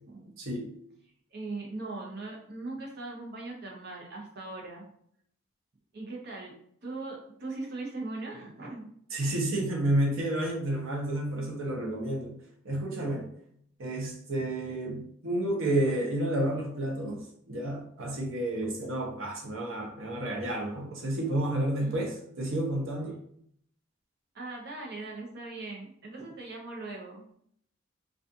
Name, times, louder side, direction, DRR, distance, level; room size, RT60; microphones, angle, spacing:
voice 1, 0.4-0.7 9.1-12.4 12.6-13.3 13.8-22.1 22.4-23.2, right 1 dB, 85° right, 0 dB, 0.7 m, -30 dB
voice 2, 1.3-4.8 5.9-6.5 6.8-8.9 21.8-22.0 24.3-27.3, right 2 dB, 55° right, -1 dB, 0.7 m, -40 dB
2.4 x 2.4 x 2.6 m, 0.66 s
head